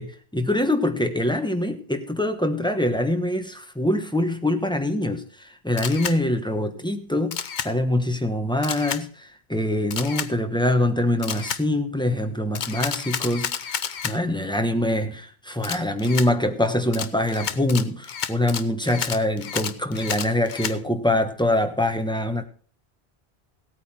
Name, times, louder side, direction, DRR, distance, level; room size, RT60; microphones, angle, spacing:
voice 1, 0.0-22.4, left 1 dB, 5° left, 6 dB, 1.1 m, -24 dB
Camera, 5.8-6.2 7.3-7.7 8.6-9.0 9.9-10.3 11.2-11.6 12.6-14.2 15.6-16.3 16.9-20.8, left 7 dB, 50° left, 0.8 m, -30 dB
16.5 x 9.0 x 4.4 m, 0.42 s
omnidirectional pair, 1.1 m